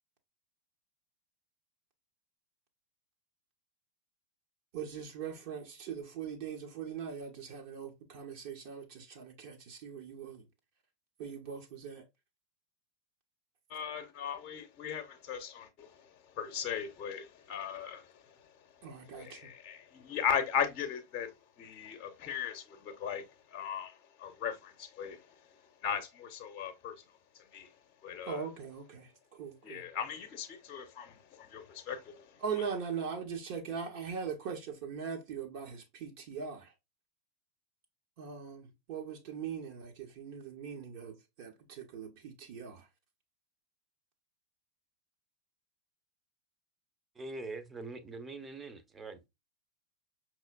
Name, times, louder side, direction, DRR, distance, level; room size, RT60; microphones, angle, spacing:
voice 1, 4.7-10.4 11.2-12.0 18.8-19.4 28.3-29.9 32.4-36.7 38.2-42.8, right 6 dB, 50° right, 0.8 m, -41 dB
voice 2, 13.7-25.5 25.8-27.0 27.3-27.7 28.0-28.4 29.6-32.6, left 7 dB, 35° left, 0.7 m, -38 dB
voice 3, 47.1-49.3, right 3 dB, 15° right, 0.7 m, -43 dB
5.6 x 3.0 x 2.3 m
figure-of-eight pair, 90°, 0 cm